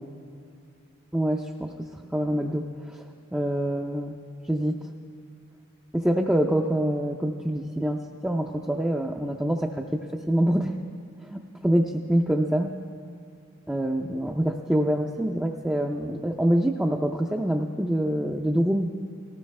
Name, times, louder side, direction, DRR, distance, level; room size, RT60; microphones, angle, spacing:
voice 1, 1.1-1.7 2.1-3.0 3.3-4.2 4.5-4.8 5.9-9.8 10.3-10.7 11.3-12.7 13.7-18.9, right 1 dB, 5° right, 0 dB, 0.4 m, -25 dB
18.5 x 15.5 x 3.2 m, 2.4 s
head